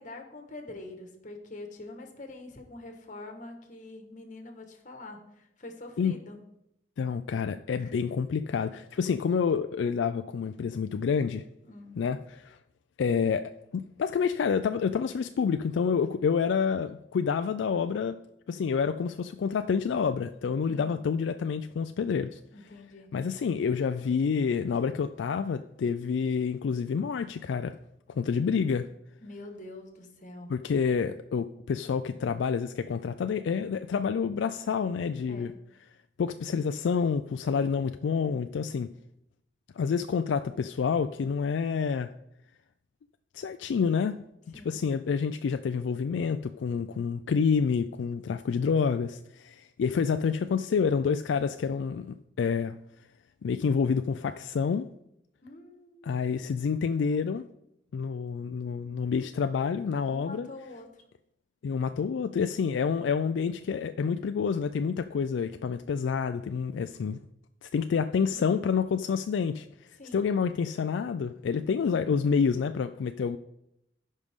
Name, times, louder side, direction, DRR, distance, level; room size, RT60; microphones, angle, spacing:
voice 1, 0.0-6.4 7.8-7.9 11.6-12.0 20.6-20.9 22.5-23.1 29.2-30.5 35.3-35.5 44.5-44.8 55.4-56.1 60.1-61.0 68.2-68.5 70.0-70.3, left 2 dB, 45° left, 4 dB, 1.4 m, -45 dB
voice 2, 7.0-11.4 12.0-12.6 13.0-18.2 18.5-22.4 23.1-27.8 28.2-28.9 30.5-35.5 36.2-38.9 39.8-42.1 43.3-44.2 44.5-52.8 53.4-54.9 56.0-57.4 57.9-60.5 61.6-67.2 67.6-69.7 70.1-73.4, left 6 dB, 75° left, 9 dB, 0.3 m, -28 dB
14.5 x 5.4 x 3.6 m, 0.80 s
head